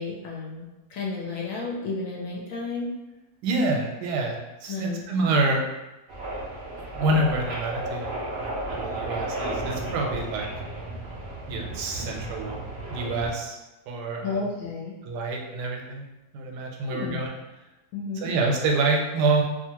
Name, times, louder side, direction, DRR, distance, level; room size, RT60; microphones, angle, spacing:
voice 1, 0.0-2.9 4.7-5.0 14.2-14.9 16.8-17.2 17.9-18.3, left 3 dB, 70° left, -3 dB, 0.8 m, -32 dB
voice 2, 3.4-5.6 6.7-8.1 8.4-10.5 11.5-12.6 12.9-13.6 13.9-14.4 15.0-16.1 16.3-17.3 18.2-19.4, right 2 dB, 90° right, 1 dB, 1.2 m, -27 dB
sound 1, 6.1-13.3, right 1 dB, 65° right, 0.6 m, -33 dB
2.7 x 2.3 x 2.8 m, 1.0 s
omnidirectional pair, 1.7 m